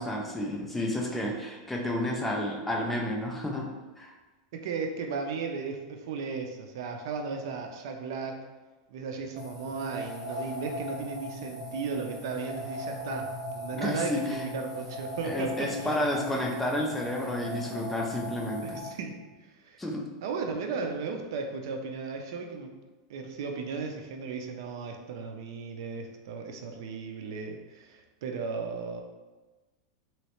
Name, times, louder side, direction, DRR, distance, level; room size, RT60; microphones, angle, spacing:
voice 1, 0.0-4.1 13.7-14.4 15.2-18.9 19.8-20.1, left 1 dB, 5° left, 0 dB, 0.4 m, -31 dB
voice 2, 4.5-8.4 8.9-15.9 18.6-19.2 19.6-19.8 20.2-22.7 23.1-29.0, right 4 dB, 65° right, 4 dB, 0.5 m, -35 dB
sound 1, 9.3-18.9, left 1 dB, 30° left, 1.3 m, -39 dB
3.1 x 3.0 x 3.0 m, 1.2 s
supercardioid pair, 165°, 2 cm